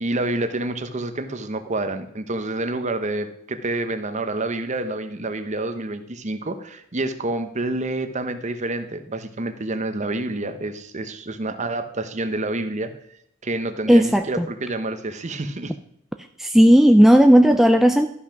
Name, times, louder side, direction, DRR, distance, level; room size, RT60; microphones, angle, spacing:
voice 1, 0.0-12.9 13.4-15.7, right 2 dB, 35° right, 9 dB, 0.9 m, -28 dB
voice 2, 13.9-14.2 16.4-18.1, equal, ahead, 6 dB, 0.3 m, -13 dB
12.5 x 6.0 x 5.8 m, 0.73 s
head